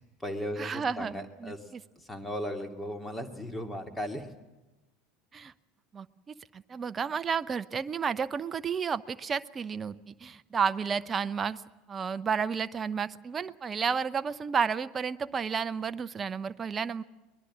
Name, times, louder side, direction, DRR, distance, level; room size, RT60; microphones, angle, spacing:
voice 1, 0.0-4.3, equal, 10° left, 6 dB, 2.5 m, -37 dB
voice 2, 0.6-1.1 1.4-1.5 5.3-5.5 5.9-6.1 6.5-11.6 11.9-17.0, right 6 dB, 25° right, 13 dB, 0.7 m, -31 dB
23.0 x 20.0 x 7.5 m, 1.1 s
figure-of-eight pair, 75°, 0 cm